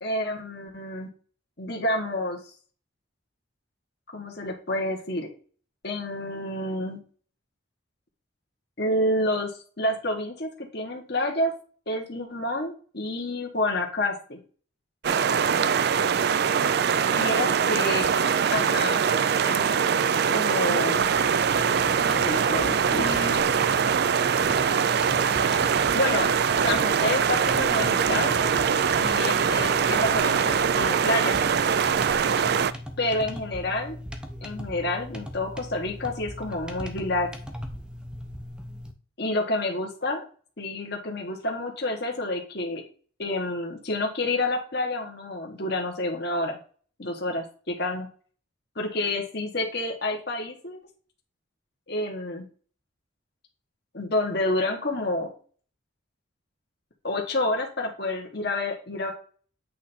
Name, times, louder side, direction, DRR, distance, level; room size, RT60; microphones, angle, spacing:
voice 1, 0.0-1.1 1.6-2.4 4.1-5.3 5.8-7.0 8.8-11.5 11.9-14.4 17.1-18.1 18.5-19.0 19.4-19.6 20.3-21.2 22.1-23.4 25.9-26.3 26.6-28.4 29.0-31.3 33.0-34.0 34.4-37.3 39.2-40.2 40.6-42.8 43.2-46.6 47.0-48.1 48.7-50.8 51.9-52.5 53.9-55.3 57.0-59.1, left 1 dB, 50° left, 1 dB, 1.4 m, -29 dB
sound 1, 15.0-32.7, right 7 dB, 50° right, 0.3 m, -23 dB
sound 2, 21.0-38.9, equal, 5° right, 0.6 m, -39 dB
8.4 x 3.3 x 4.3 m, 0.42 s
head